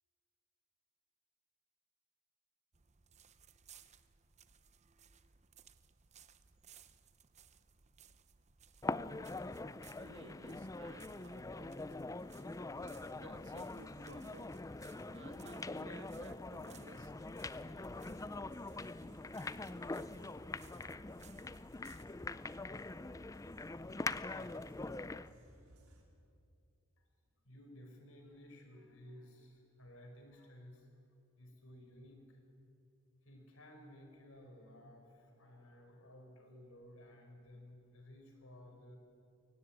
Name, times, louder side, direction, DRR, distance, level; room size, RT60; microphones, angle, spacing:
sound 1, 2.7-22.0, right 7 dB, 30° right, 0.7 m, -64 dB
sound 2, 8.8-25.3, left 2 dB, 15° left, 0.4 m, -43 dB
voice 1, 9.9-12.0 13.1-14.5 15.1-17.1, right 3 dB, 60° right, 10 dB, 1.3 m, -57 dB
sound 3, 12.1-26.0, right 1 dB, 80° right, 3.7 m, -62 dB
voice 2, 27.4-31.0 31.4-32.4 33.2-39.0, left 1 dB, 65° left, 4 dB, 4.7 m, -56 dB
23.0 x 18.0 x 8.8 m, 2.6 s
head